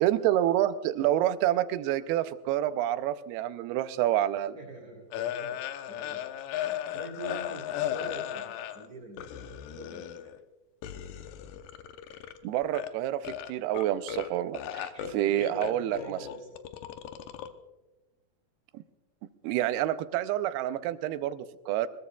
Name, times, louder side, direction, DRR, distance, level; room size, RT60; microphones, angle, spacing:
voice 1, 0.0-4.5 12.4-16.2 18.7-18.8 19.4-21.9, right 13 dB, 90° right, 12 dB, 2.6 m, -28 dB
voice 2, 4.5-5.6 5.9-6.2 6.5-10.3 14.9-16.5, right 1 dB, 25° right, -9 dB, 5.6 m, -44 dB
sound 1, 5.1-8.9 9.2-10.4 10.8-12.4 12.6-12.9 13.2-14.3 14.5-17.5, left 11 dB, 75° left, 2.2 m, -36 dB
22.5 x 21.0 x 2.3 m, 1.1 s
omnidirectional pair, 4.4 m